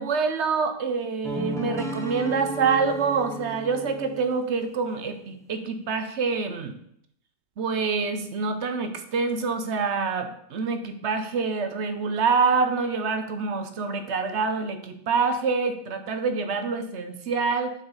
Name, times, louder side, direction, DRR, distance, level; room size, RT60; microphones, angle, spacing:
voice 1, 0.0-6.7 7.6-17.7, right 5 dB, 60° right, 8 dB, 1.0 m, -26 dB
sound 1, 1.2-4.4, right 1 dB, 5° left, 0.6 m, -34 dB
7.3 x 6.2 x 4.0 m, 0.71 s
omnidirectional pair, 1.4 m